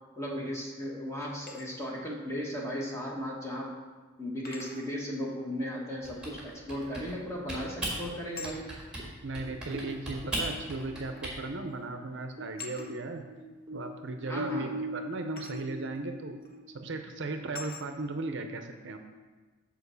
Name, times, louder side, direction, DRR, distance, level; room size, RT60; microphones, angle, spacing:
voice 1, 0.2-3.7 4.2-8.7 14.3-14.8, equal, 15° left, -3 dB, 1.2 m, -36 dB
sound 1, 1.2-1.7 3.2-3.3 4.4-4.9 7.1-7.4 8.3-8.6 9.8-9.9 11.2-11.4 11.7-11.9 12.6-12.9 15.4-15.6 16.4-16.6 17.5-17.9, left 4 dB, 45° left, 1.0 m, -45 dB
Typing, 6.0-7.2 7.5-8.0 8.4-9.1 9.3-11.4, right 1 dB, 5° right, 1.8 m, -37 dB
sound 2, 9.0-12.5 12.8-16.9, equal, 20° right, 0.9 m, -40 dB
voice 2, 9.2-13.2 13.7-16.4 16.7-19.0, right 3 dB, 55° right, 6 dB, 0.6 m, -36 dB
6.9 x 4.6 x 6.8 m, 1.3 s
head